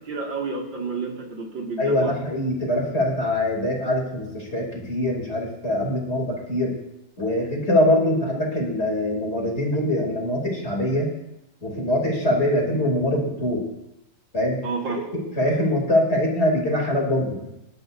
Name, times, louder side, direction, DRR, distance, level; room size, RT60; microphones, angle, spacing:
voice 1, 0.1-2.1 14.6-15.0, right 4 dB, 80° right, -1 dB, 3.0 m, -30 dB
voice 2, 1.8-6.7 7.2-11.1 11.6-13.6 14.3-14.6 15.1-17.4, left 1 dB, 35° left, -2 dB, 3.5 m, -23 dB
25.5 x 11.5 x 2.7 m, 0.88 s
omnidirectional pair, 2.0 m